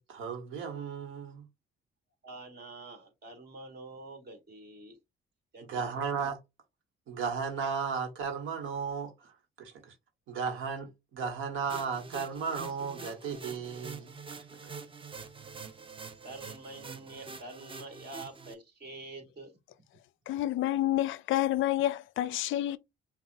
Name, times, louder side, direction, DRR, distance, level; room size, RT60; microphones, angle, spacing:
voice 1, 0.0-1.5 5.6-6.4 7.1-10.0 10.3-14.8, right 6 dB, 85° right, 1.2 m, -35 dB
voice 2, 2.2-5.0 5.5-5.9 16.2-19.5, right 2 dB, 55° right, 2.0 m, -46 dB
sound 1, 11.7-18.5, right 4 dB, 25° right, 0.6 m, -45 dB
voice 3, 20.3-22.8, left 14 dB, 80° left, 0.4 m, -29 dB
5.8 x 2.4 x 2.5 m
cardioid pair, 90°, 20 cm